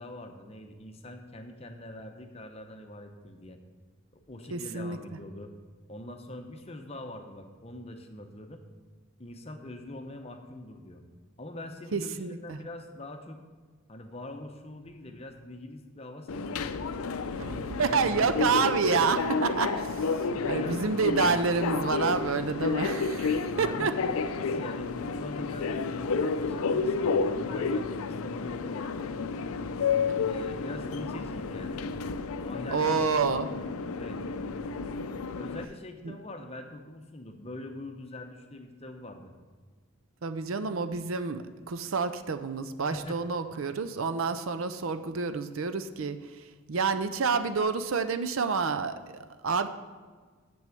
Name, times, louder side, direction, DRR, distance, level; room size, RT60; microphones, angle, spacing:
voice 1, 0.0-3.6 4.1-5.5 5.9-8.6 9.2-11.0 11.4-13.4 13.9-16.7 17.5-18.5 20.5-20.9 23.5-29.2 30.2-31.8 32.4-34.2 35.3-39.3 42.9-43.2, left 1 dB, 30° left, 5 dB, 0.7 m, -43 dB
voice 2, 4.5-5.0 11.9-12.6 17.4-23.9 30.1-30.3 32.7-33.5 36.0-36.2 40.2-46.2 46.7-49.7, right 5 dB, 75° right, 10 dB, 0.5 m, -29 dB
Subway metro underground, 16.3-35.6, left 4 dB, 85° left, 0.4 m, -31 dB
7.0 x 6.1 x 7.6 m, 1.5 s
head